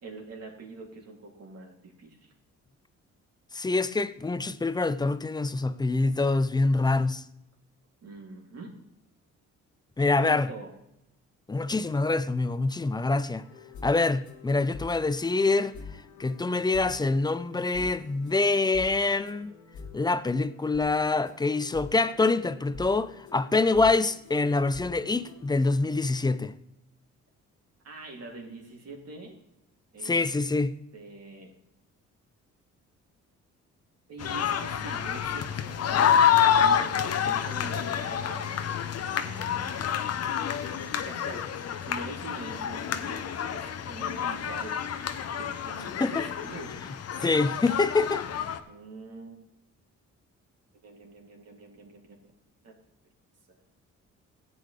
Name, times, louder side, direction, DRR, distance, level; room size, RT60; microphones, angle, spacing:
voice 1, 0.0-2.3 8.0-8.8 10.2-10.7 27.8-29.4 29.9-30.3 30.9-31.5 34.1-38.8 39.0-39.7 41.0-44.8 45.3-46.8 48.6-49.4 50.8-52.2 52.6-52.8, right 3 dB, 55° right, 2.9 m, -44 dB
voice 2, 3.5-7.2 10.0-10.5 11.5-13.4 13.8-15.8 16.2-19.5 19.9-26.5 30.0-30.7 46.0-46.3 47.2-48.3, left 3 dB, 15° left, 0.5 m, -25 dB
sound 1, 13.4-25.5, left 4 dB, 75° left, 1.6 m, -46 dB
sound 2, 34.2-48.6, left 8 dB, 55° left, 0.9 m, -28 dB
15.5 x 8.6 x 3.3 m
cardioid pair, 90°, 30 cm